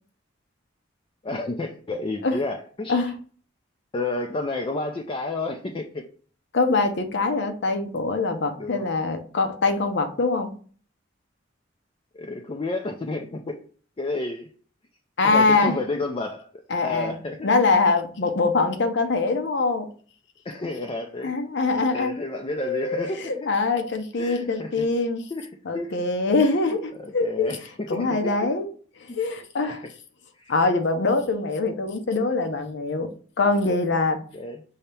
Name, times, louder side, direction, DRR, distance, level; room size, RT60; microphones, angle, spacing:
voice 1, 1.2-3.0 3.9-6.0 8.6-8.9 12.1-13.6 14.0-14.5 15.2-16.5 16.8-17.5 20.4-21.3 21.7-23.5 24.2-24.8 25.3-25.4 25.7-26.0 26.4-26.6 27.0-28.3 29.1-29.2 29.7-29.9 30.4-30.5 34.3-34.6, left 2 dB, 30° left, 0.4 m, -31 dB
voice 2, 6.5-10.5 15.2-15.8 16.7-17.1 17.4-19.9 21.2-22.1 22.6-25.2 25.6-27.5 27.9-28.7 29.1-29.8 30.5-33.1 33.4-34.2, left 3 dB, 65° left, 0.7 m, -23 dB
5.5 x 2.8 x 3.3 m
head